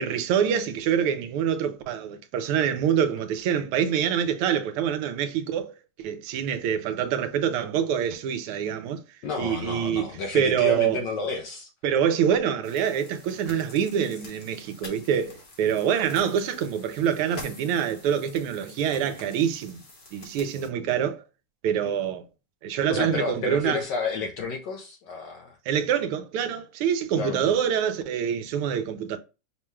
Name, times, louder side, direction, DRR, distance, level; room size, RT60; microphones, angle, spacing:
voice 1, 0.0-5.7 6.0-9.0 9.4-11.0 11.8-19.8 20.1-21.2 21.6-22.2 22.6-23.8 25.7-29.2, right 8 dB, 85° right, 1.5 m, -25 dB
voice 2, 9.2-11.7 22.9-25.6 27.2-27.5, left 4 dB, 75° left, 1.0 m, -31 dB
sound 1, 12.6-20.7, left 2 dB, 40° left, 1.0 m, -47 dB
5.4 x 2.2 x 3.1 m
omnidirectional pair, 2.4 m